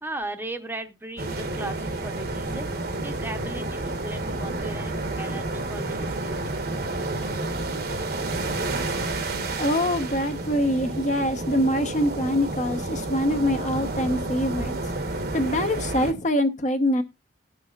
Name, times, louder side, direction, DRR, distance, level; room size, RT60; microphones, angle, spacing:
voice 1, 0.0-2.7 3.0-6.5, right 1 dB, 10° right, 7 dB, 0.8 m, -37 dB
sound 1, 1.2-16.1, right 2 dB, 60° right, 1.2 m, -30 dB
voice 2, 9.6-14.8 15.3-17.0, equal, 45° left, 7 dB, 0.9 m, -24 dB
18.5 x 6.2 x 2.4 m, 0.23 s
head